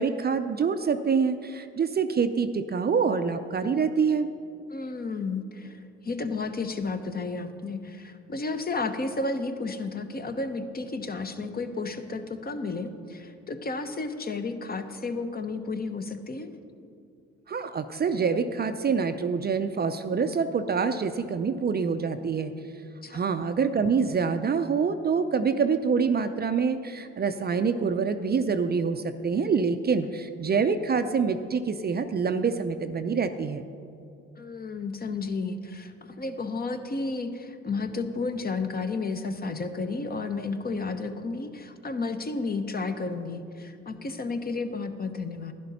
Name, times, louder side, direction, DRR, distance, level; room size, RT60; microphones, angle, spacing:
voice 1, 0.0-4.3 17.5-22.5 23.1-33.6, right 5 dB, 35° right, 9 dB, 0.5 m, -26 dB
voice 2, 4.7-16.5 23.0-23.2 30.0-30.2 34.4-45.5, left 3 dB, 30° left, 8 dB, 0.9 m, -32 dB
11.0 x 11.0 x 4.2 m, 2.4 s
supercardioid pair, 65°, 30 cm